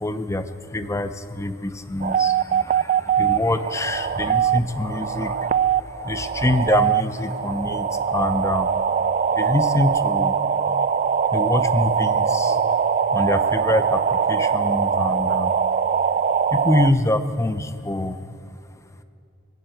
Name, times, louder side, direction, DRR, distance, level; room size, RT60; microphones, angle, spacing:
voice 1, 0.0-0.4 0.7-1.1 1.4-2.6 3.2-5.3 6.1-7.9 8.1-8.7 9.4-10.3 11.3-12.5 13.1-14.0 14.3-15.5 16.6-18.2, left 1 dB, 15° left, 10 dB, 0.5 m, -24 dB
sound 1, 2.0-16.9, right 7 dB, 40° right, 0.3 m, -22 dB
20.0 x 8.1 x 7.7 m, 2.4 s
head